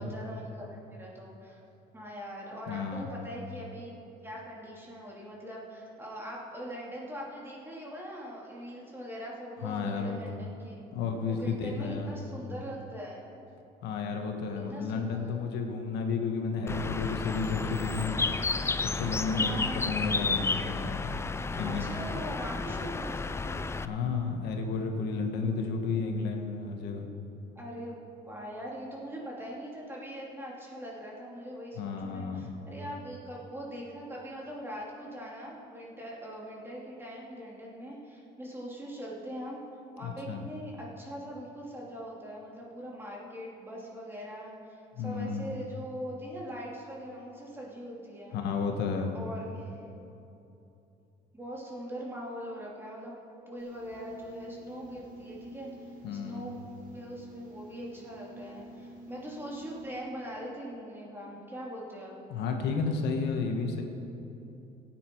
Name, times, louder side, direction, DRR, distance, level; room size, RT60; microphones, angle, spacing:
voice 1, 0.0-1.6 1.9-3.9 4.2-10.8 11.2-13.2 14.6-15.4 19.3-19.9 21.6-23.6 27.5-39.6 39.9-48.4 49.1-49.8 51.3-53.1 53.5-56.6 56.9-62.2, equal, 15° right, -4 dB, 2.9 m, -42 dB
voice 2, 2.7-3.1 9.6-10.4 10.9-12.1 13.8-18.2 18.8-19.5 19.9-21.1 21.6-21.9 23.8-27.1 31.8-32.6 40.0-40.5 45.0-45.5 48.3-49.1 56.0-56.6 62.3-63.8, left 4 dB, 80° left, 3 dB, 1.4 m, -32 dB
Bird, 16.7-23.9, left 4 dB, 15° left, 0.4 m, -32 dB
sound 1, 53.6-59.8, right 1 dB, 55° right, 3.3 m, -49 dB
16.5 x 9.3 x 4.6 m, 2.8 s
cardioid pair, 110°, 17 cm